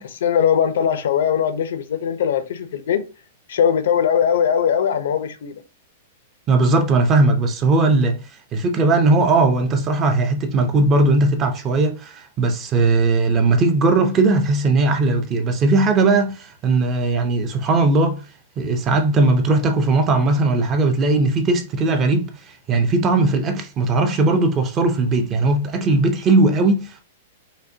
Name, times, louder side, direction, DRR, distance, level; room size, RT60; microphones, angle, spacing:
voice 1, 0.0-3.0 3.5-5.5, left 8 dB, 70° left, 0.5 m, -20 dB
voice 2, 6.5-8.2 8.5-18.2 18.6-27.0, right 3 dB, 20° right, 0.5 m, -18 dB
5.1 x 2.1 x 2.7 m
supercardioid pair, 170°, 0 cm